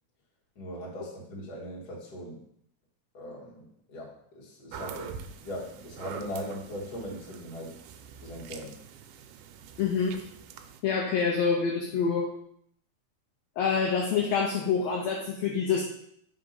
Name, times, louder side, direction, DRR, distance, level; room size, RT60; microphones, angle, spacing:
voice 1, 0.5-2.4 3.1-7.7 8.2-8.8, equal, 45° left, -4 dB, 1.5 m, -40 dB
sound 1, 4.7-10.8, right 7 dB, 90° right, 2.1 m, -44 dB
voice 2, 9.8-10.1 10.8-12.3 13.6-15.8, left 5 dB, 75° left, 0 dB, 1.6 m, -26 dB
4.6 x 3.8 x 5.4 m, 0.68 s
omnidirectional pair, 3.6 m